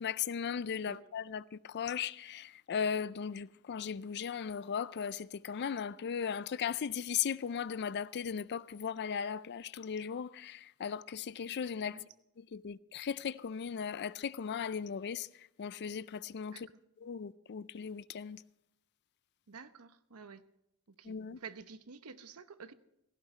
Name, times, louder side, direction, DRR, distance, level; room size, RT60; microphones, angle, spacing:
voice 1, 0.0-12.0 12.4-16.7 17.0-18.4 21.0-21.4, left 7 dB, 50° left, 0.4 m, -37 dB
voice 2, 19.5-20.4 20.9-22.7, right 5 dB, 85° right, 0.9 m, -50 dB
17.0 x 15.0 x 3.2 m
head